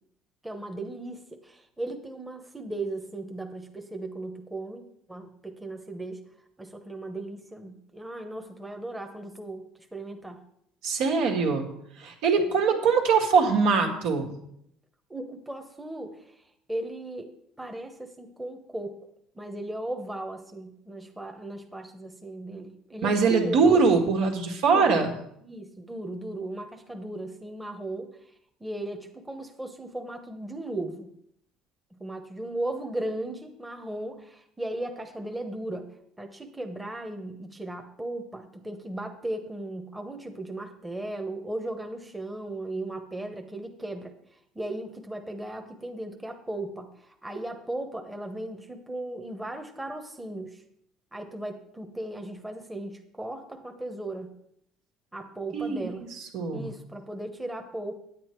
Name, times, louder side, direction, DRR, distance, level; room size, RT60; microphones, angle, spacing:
voice 1, 0.4-6.2 6.6-10.4 12.4-12.5 15.1-16.2 16.7-17.3 17.6-19.0 19.3-24.0 24.6-24.9 25.4-28.1 28.6-31.1 31.9-35.9 36.2-44.2 44.5-50.6 51.1-54.3 55.1-56.1 56.5-57.9, right 1 dB, 10° right, 4 dB, 1.0 m, -36 dB
voice 2, 10.8-11.7 12.0-14.3 23.0-25.1 55.5-55.9 56.2-56.7, right 5 dB, 75° right, 2 dB, 1.9 m, -22 dB
9.2 x 8.6 x 4.5 m, 0.72 s
cardioid pair, 115°, 0 cm